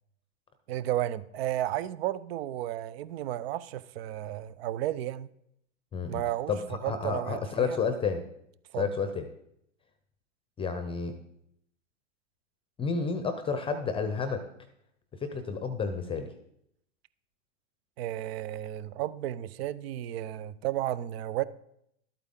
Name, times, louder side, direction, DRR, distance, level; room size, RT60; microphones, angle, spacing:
voice 1, 0.7-5.3 6.1-6.5 6.8-7.8 8.7-8.9 18.0-21.4, right 13 dB, 55° right, 0.6 m, -33 dB
voice 2, 6.9-8.2 8.8-9.2 10.6-11.1 12.8-14.4 15.2-16.3, left 5 dB, 15° left, 0.7 m, -30 dB
12.5 x 8.4 x 3.7 m
hypercardioid pair, 120°, 37 cm